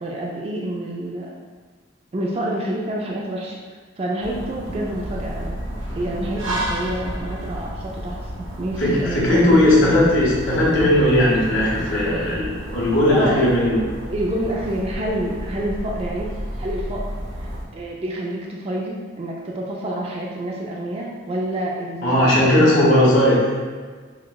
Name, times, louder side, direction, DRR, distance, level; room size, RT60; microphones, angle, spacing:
voice 1, 0.0-1.3 2.1-3.6 4.0-5.6 5.9-9.4 13.1-13.4 14.1-16.3 16.6-17.4 17.7-22.7, right 1 dB, 30° right, -2 dB, 0.3 m, -28 dB
sound 1, 4.2-17.7, equal, 80° right, 0.7 m, -31 dB
voice 2, 8.8-13.8 22.0-23.4, left 1 dB, 75° left, -6 dB, 1.3 m, -17 dB
5.6 x 2.2 x 2.3 m, 1.5 s
head